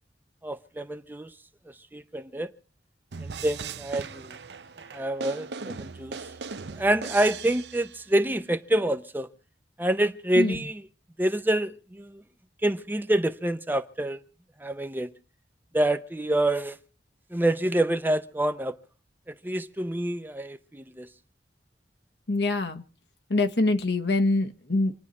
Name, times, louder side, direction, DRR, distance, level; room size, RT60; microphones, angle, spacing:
voice 1, 0.4-1.3 1.9-2.5 3.2-4.4 4.9-6.2 6.8-9.3 9.8-10.9 11.2-12.2 12.6-14.2 14.6-15.1 15.7-16.8 17.3-18.7 19.3-21.1, right 1 dB, 10° right, 0.6 m, -27 dB
sound 1, 3.1-8.1, right 5 dB, 70° right, 0.7 m, -39 dB
voice 2, 22.3-22.8 23.3-24.9, left 2 dB, 65° left, 1.2 m, -24 dB
27.0 x 9.9 x 4.2 m
head